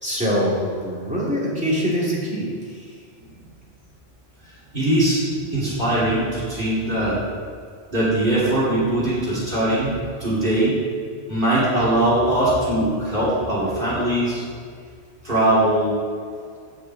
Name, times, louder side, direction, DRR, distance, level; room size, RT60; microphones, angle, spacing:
voice 1, 0.0-2.9, equal, 5° right, -7 dB, 2.7 m, -24 dB
voice 2, 4.7-7.2 7.9-9.9 10.2-10.7 11.3-14.4 15.2-16.0, right 1 dB, 45° right, -8 dB, 3.2 m, -21 dB
7.2 x 6.6 x 7.8 m, 2.1 s
omnidirectional pair, 1.3 m